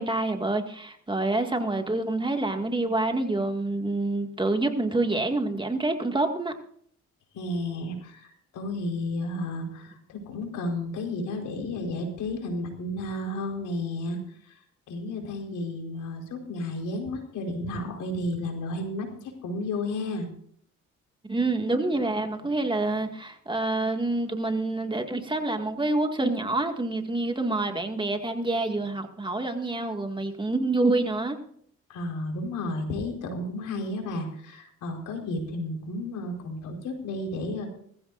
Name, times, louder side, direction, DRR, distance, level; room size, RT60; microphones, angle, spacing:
voice 1, 0.0-6.5 21.3-31.4, right 2 dB, 15° right, 4 dB, 2.1 m, -27 dB
voice 2, 7.3-14.2 14.4-14.6 14.9-20.3 31.9-37.8, left 1 dB, 85° left, 2 dB, 4.5 m, -32 dB
20.0 x 15.0 x 2.6 m, 0.62 s
cardioid pair, 90°, 30 cm